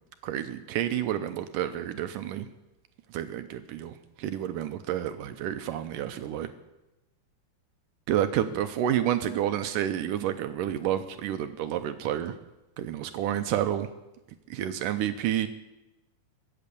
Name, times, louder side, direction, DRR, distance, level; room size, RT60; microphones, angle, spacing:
voice 1, 0.2-2.5 3.1-6.5 8.1-12.3 12.8-13.9 14.5-15.5, right 11 dB, 75° right, 9 dB, 2.0 m, -29 dB
22.5 x 8.8 x 6.9 m, 1.0 s
omnidirectional pair, 4.3 m